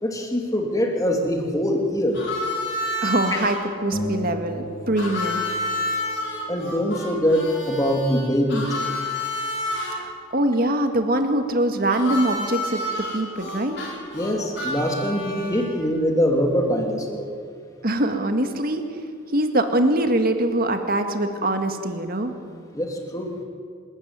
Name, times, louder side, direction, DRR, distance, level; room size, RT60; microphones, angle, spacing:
voice 1, 0.0-2.2 6.5-8.7 14.1-17.2 22.7-23.3, equal, 15° left, 2 dB, 2.7 m, -23 dB
Harmonica, 2.1-3.6 5.0-10.0 11.9-15.8, left 1 dB, 55° left, 5.4 m, -29 dB
voice 2, 3.0-5.4 10.0-12.8 13.1-13.8 17.8-18.9 19.3-22.3, right 1 dB, 45° right, 6 dB, 1.9 m, -23 dB
sound 1, 3.9-6.5, equal, 35° left, 1.2 m, -33 dB
27.5 x 13.0 x 9.6 m, 2.3 s
head